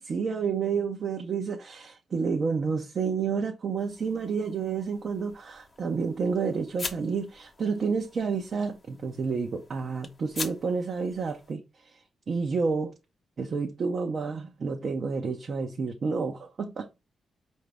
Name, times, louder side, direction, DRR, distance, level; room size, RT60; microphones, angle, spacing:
voice 1, 0.0-12.9 13.4-16.9, right 5 dB, 60° right, 0.7 m, -30 dB
sound 1, 3.8-11.5, left 3 dB, 45° left, 1.0 m, -44 dB
4.8 x 2.6 x 3.4 m
hypercardioid pair, 40°, 0 cm